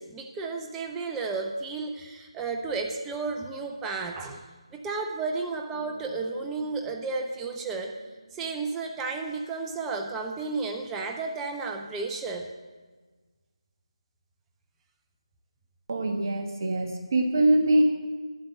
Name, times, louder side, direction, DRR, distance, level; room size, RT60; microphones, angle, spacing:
voice 1, 0.0-4.4 4.7-8.0 8.3-12.5, right 4 dB, 5° right, 3 dB, 0.4 m, -33 dB
Bass guitar, 5.7-9.7, right 1 dB, 75° right, 2.7 m, -52 dB
voice 2, 15.9-17.8, right 1 dB, 35° right, 2 dB, 1.2 m, -23 dB
9.4 x 8.0 x 7.6 m, 1.3 s
figure-of-eight pair, 160°, 3 cm